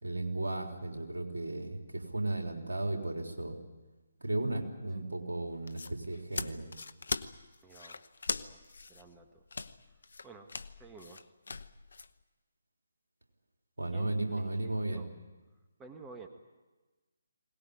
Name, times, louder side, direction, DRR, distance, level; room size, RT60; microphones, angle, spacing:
voice 1, 0.0-3.6 4.2-6.7 13.8-15.0, right 2 dB, 70° right, 3 dB, 3.6 m, -35 dB
sound 1, 5.5-12.1, left 4 dB, 65° left, 0.9 m, -40 dB
voice 2, 7.6-8.0 8.3-8.6 8.9-9.4 10.2-10.5 10.8-11.3 13.9-15.1 15.8-16.3, right 4 dB, 10° right, 5 dB, 1.4 m, -52 dB
22.0 x 18.5 x 9.7 m, 1.2 s
figure-of-eight pair, 145°, 0 cm